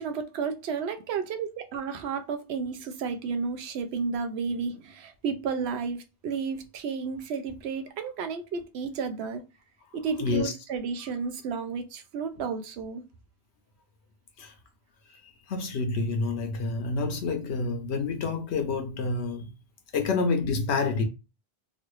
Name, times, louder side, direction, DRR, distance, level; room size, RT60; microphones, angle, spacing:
voice 1, 0.0-9.4 9.9-13.0, right 5 dB, 75° right, 0.8 m, -32 dB
voice 2, 10.2-10.5 14.4-14.5 15.1-19.5 19.9-21.0, left 4 dB, 75° left, 0.9 m, -28 dB
3.1 x 2.4 x 3.0 m
omnidirectional pair, 1.1 m